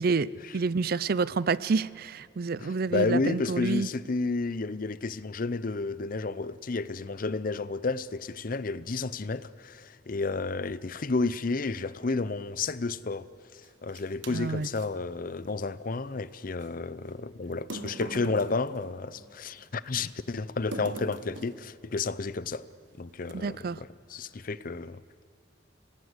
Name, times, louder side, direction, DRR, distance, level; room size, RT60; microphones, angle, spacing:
voice 1, 0.0-3.9 14.3-14.7 23.3-23.8, right 4 dB, 55° right, 0.5 m, -28 dB
voice 2, 2.6-13.3 13.5-22.7 23.0-25.0, left 3 dB, 50° left, 0.6 m, -31 dB
sound 1, 13.6-14.9 16.6-16.7 17.5-19.7 20.7-21.7 22.5-22.7 23.2-23.7, right 2 dB, 90° right, 1.3 m, -41 dB
27.0 x 19.0 x 8.2 m
head